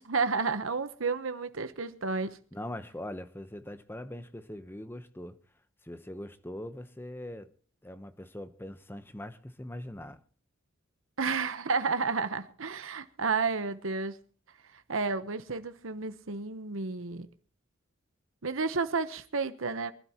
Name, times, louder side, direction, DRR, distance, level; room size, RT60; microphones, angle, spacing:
voice 1, 0.0-2.4 11.2-14.2 14.7-17.3 18.4-19.9, right 4 dB, 90° right, 1.0 m, -31 dB
voice 2, 2.5-5.4 5.8-7.5 7.8-10.2, left 1 dB, 10° left, 0.9 m, -42 dB
24.0 x 12.0 x 3.0 m
head